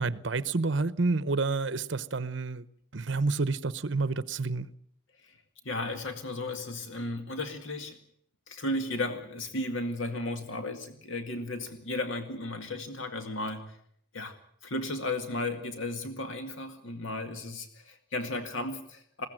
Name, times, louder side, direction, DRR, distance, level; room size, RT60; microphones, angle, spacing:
voice 1, 0.0-2.6 2.9-4.7, right 3 dB, 60° right, 0.9 m, -29 dB
voice 2, 5.6-8.0 8.5-13.8 14.1-14.4 14.6-19.3, left 2 dB, 70° left, 2.1 m, -34 dB
21.0 x 16.5 x 9.0 m
head